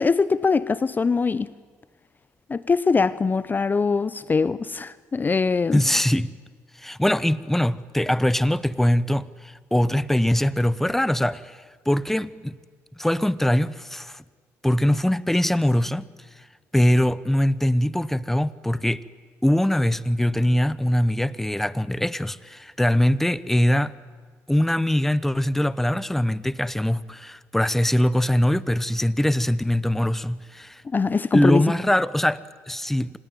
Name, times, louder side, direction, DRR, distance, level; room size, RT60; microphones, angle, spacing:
voice 1, 0.0-1.5 2.5-5.8 30.8-31.7, left 4 dB, 30° left, 0.7 m, -22 dB
voice 2, 5.7-6.3 6.8-11.6 11.9-12.6 13.0-14.2 14.6-16.1 16.7-19.0 19.4-23.9 24.5-30.8 31.3-33.2, left 1 dB, 5° left, 0.9 m, -22 dB
27.0 x 20.0 x 9.3 m
supercardioid pair, 70°, 6 cm